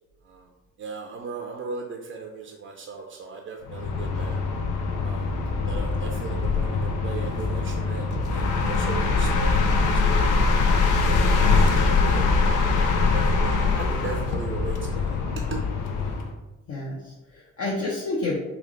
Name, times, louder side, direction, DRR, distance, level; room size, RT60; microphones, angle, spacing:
voice 1, 0.8-4.4 5.0-10.4 11.0-12.3 12.8-15.7, right 5 dB, 45° right, 1 dB, 0.5 m, -37 dB
sound 1, 3.6-16.3, left 4 dB, 85° left, 0.5 m, -23 dB
voice 2, 16.7-18.4, left 2 dB, 50° left, -4 dB, 0.8 m, -30 dB
3.4 x 2.4 x 3.6 m, 1.1 s
cardioid pair, 90°, 30 cm